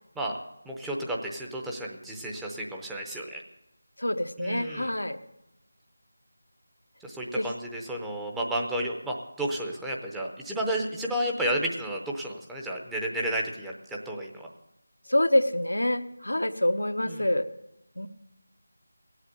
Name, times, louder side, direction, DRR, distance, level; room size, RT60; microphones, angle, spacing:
voice 1, 0.6-3.4 4.4-4.9 7.0-14.5 17.0-17.3, right 1 dB, 5° right, -1 dB, 0.7 m, -32 dB
voice 2, 4.0-5.2 7.4-7.5 15.1-17.5 18.0-18.1, left 1 dB, 90° left, 8 dB, 0.9 m, -26 dB
17.0 x 8.1 x 6.8 m, 0.85 s
figure-of-eight pair, 170°, 0 cm